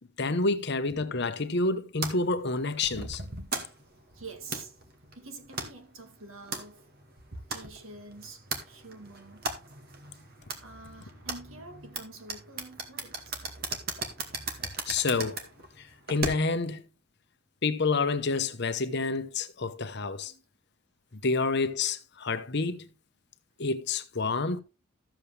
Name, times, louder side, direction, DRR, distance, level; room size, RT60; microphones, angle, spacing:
voice 1, 0.2-3.2 14.9-15.4 15.8-16.8 17.6-20.3 21.1-22.9 23.6-24.6, left 3 dB, 55° left, 1.0 m, -28 dB
sound 1, 2.0-16.7, right 3 dB, 45° right, 2.0 m, -39 dB
voice 2, 4.1-4.8 5.1-7.0 7.5-9.4 10.6-13.4 20.2-20.5, right 3 dB, 75° right, 2.1 m, -47 dB
14.0 x 7.7 x 3.3 m
head